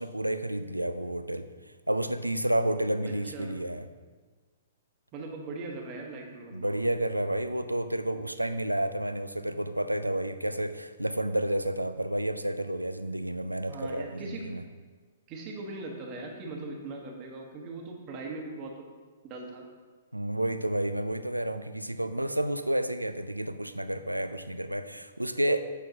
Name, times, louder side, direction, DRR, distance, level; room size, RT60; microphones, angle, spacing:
voice 1, 0.0-1.5 1.9-3.9 6.5-14.6 20.1-25.6, right 1 dB, 85° right, 10 dB, 0.4 m, -30 dB
voice 2, 3.0-3.6 5.1-6.8 13.7-14.5 15.3-18.8 19.2-19.7, right 3 dB, 30° right, 1 dB, 1.1 m, -40 dB
8.0 x 5.9 x 2.8 m, 1.4 s
figure-of-eight pair, 115°, 0 cm